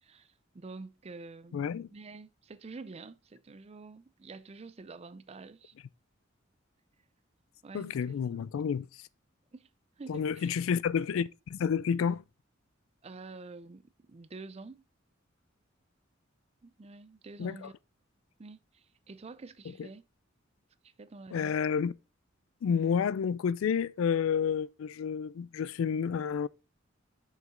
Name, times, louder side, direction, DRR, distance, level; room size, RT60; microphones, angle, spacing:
voice 1, 0.0-1.6 1.9-5.7 7.6-8.5 9.5-9.7 10.0-10.5 13.0-14.8 16.6-17.7 18.4-20.0 20.8-21.6, right 3 dB, 30° right, 0.4 m, -48 dB
voice 2, 1.5-1.9 7.7-8.9 10.1-12.2 17.4-17.7 19.8-19.9 21.3-21.9 22.6-26.5, left 7 dB, 85° left, 0.3 m, -30 dB
6.6 x 5.1 x 3.7 m
head